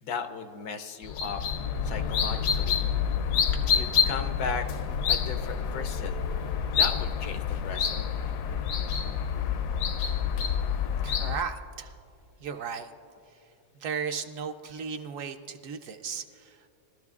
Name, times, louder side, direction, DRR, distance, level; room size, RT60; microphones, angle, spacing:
voice 1, 0.0-1.4 1.8-2.8 3.5-4.7 5.1-6.2 6.8-8.1, left 5 dB, 85° left, 8 dB, 1.3 m, -36 dB
sound 1, 1.0-11.4, left 7 dB, 70° left, 0.9 m, -28 dB
voice 2, 11.0-11.9 12.4-12.9 13.8-16.7, right 6 dB, 70° right, 7 dB, 0.9 m, -35 dB
21.0 x 13.0 x 2.4 m, 2.5 s
omnidirectional pair, 1.6 m